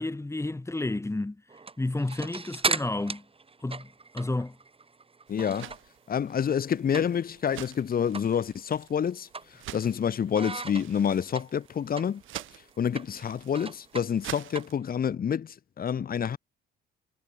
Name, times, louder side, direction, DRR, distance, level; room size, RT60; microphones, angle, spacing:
voice 1, 0.0-1.4 1.8-3.2 3.6-3.9 4.1-4.6, left 2 dB, 15° left, 3.3 m, -31 dB
sound 1, 1.5-6.0 6.3-7.4 7.7-7.8 8.1-8.4 8.7-10.0 10.3-15.1, right 4 dB, 30° right, 5.6 m, -36 dB
voice 2, 5.3-5.8 6.1-12.2 12.8-16.4, left 8 dB, 45° left, 1.5 m, -28 dB
sound 2, 5.3-14.8, right 14 dB, 80° right, 2.6 m, -47 dB
cardioid pair, 90°, 20 cm